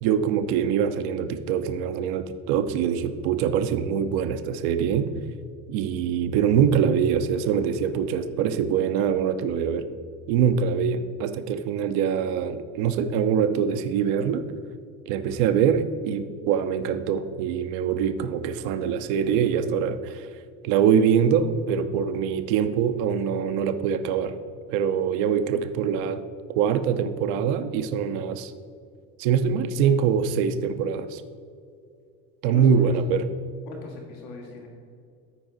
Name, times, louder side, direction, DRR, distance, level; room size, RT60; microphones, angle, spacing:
voice 1, 0.0-5.1 5.7-9.9 10.3-14.5 15.1-20.3 20.6-24.3 24.7-26.2 26.5-28.5 29.2-31.2 32.4-33.3, right 7 dB, 85° right, 9 dB, 0.6 m, -24 dB
voice 2, 32.5-33.0 33.7-34.7, left 3 dB, 80° left, 0 dB, 1.8 m, -40 dB
13.5 x 4.9 x 3.9 m, 2.3 s
supercardioid pair, 85°, 37 cm